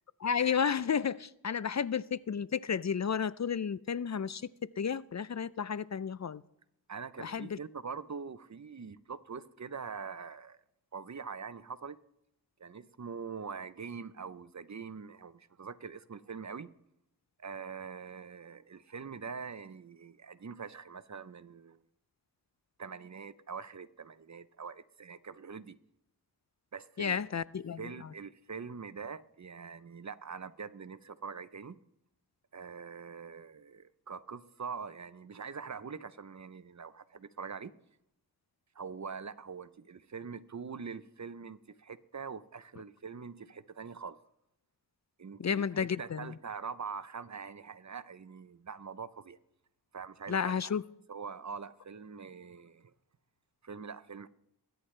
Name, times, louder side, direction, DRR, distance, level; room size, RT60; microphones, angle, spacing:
voice 1, 0.2-4.5 4.8-6.4 7.2-7.6 27.0-28.1 45.4-46.3 50.3-50.8, left 7 dB, 45° left, 0.5 m, -32 dB
voice 2, 6.9-10.6 10.9-12.0 12.6-16.7 17.4-21.8 22.8-25.8 26.7-27.2 27.8-31.8 32.5-37.7 38.8-44.2 45.2-45.6 46.0-49.4 49.9-50.6 51.1-52.9 53.6-54.3, right 5 dB, 45° right, 0.7 m, -43 dB
21.5 x 10.0 x 3.3 m
cardioid pair, 40°, 39 cm